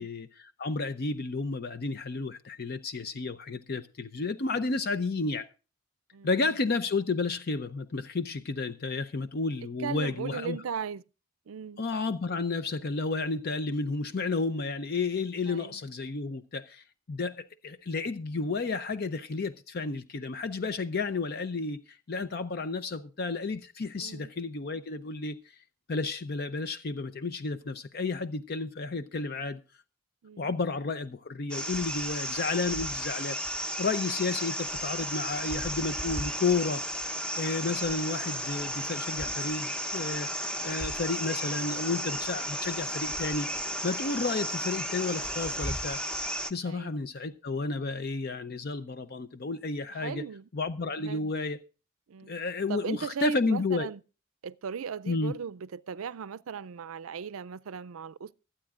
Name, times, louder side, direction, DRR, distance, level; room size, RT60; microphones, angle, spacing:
voice 1, 0.0-5.5 6.2-10.6 11.8-25.5 25.9-29.6 30.4-33.4 33.8-36.8 37.4-43.5 43.8-46.0 46.5-50.2 50.5-51.6 52.3-53.9 55.1-55.3, left 3 dB, 50° left, 0.6 m, -32 dB
voice 2, 6.1-6.6 9.8-11.0 11.5-11.8 15.5-15.8 24.0-24.3 30.2-30.5 46.6-47.0 49.9-50.5 51.0-51.3 52.1-52.3 52.7-54.0 54.4-58.3, right 7 dB, 90° right, 0.5 m, -37 dB
sound 1, 31.5-46.5, equal, 5° left, 0.7 m, -34 dB
24.5 x 8.7 x 2.4 m
head